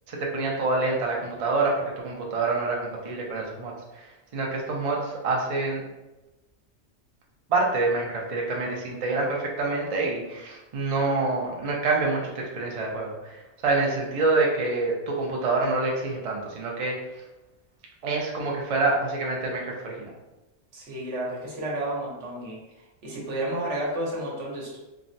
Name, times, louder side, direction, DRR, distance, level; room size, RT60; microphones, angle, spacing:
voice 1, 0.1-4.0 4.3-5.8 7.5-16.9 18.0-20.1, right 3 dB, 50° right, -2 dB, 0.4 m, -27 dB
voice 2, 20.7-22.6 23.0-24.8, right 1 dB, 75° right, -4 dB, 1.2 m, -31 dB
3.4 x 2.1 x 2.6 m, 1.0 s
omnidirectional pair, 1.3 m